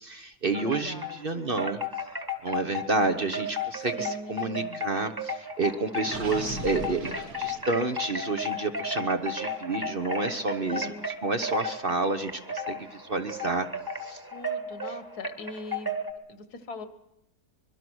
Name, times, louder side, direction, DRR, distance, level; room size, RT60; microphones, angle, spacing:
voice 1, 0.0-1.8 2.4-13.7 14.0-14.2, right 3 dB, 40° right, 8 dB, 1.0 m, -30 dB
Wind chime, 0.5-1.2 1.6-16.1, left 2 dB, 15° right, 1.7 m, -34 dB
voice 2, 0.6-1.5 4.0-4.9 10.6-11.1 12.8-12.9 14.2-16.0 16.3-16.9, left 3 dB, 75° left, 12 dB, 1.9 m, -42 dB
Gurgling, 6.0-8.1, right 2 dB, 65° right, 2.4 m, -38 dB
24.5 x 22.0 x 6.2 m, 0.86 s
omnidirectional pair, 1.7 m